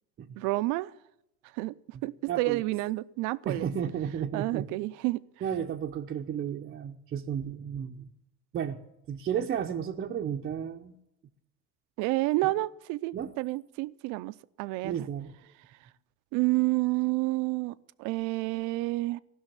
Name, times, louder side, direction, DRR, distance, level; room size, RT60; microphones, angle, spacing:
voice 1, 0.4-0.9 1.6-1.7 2.0-3.7 4.3-5.2 12.0-15.0 16.3-19.2, right 20 dB, 70° right, 0.6 m, -29 dB
voice 2, 2.3-2.6 3.4-4.7 5.4-8.1 8.5-8.8 9.1-11.0 12.4-12.5 13.1-13.3 14.8-15.3, right 8 dB, 30° right, 0.7 m, -33 dB
15.5 x 6.3 x 9.8 m
cardioid pair, 150°, 32 cm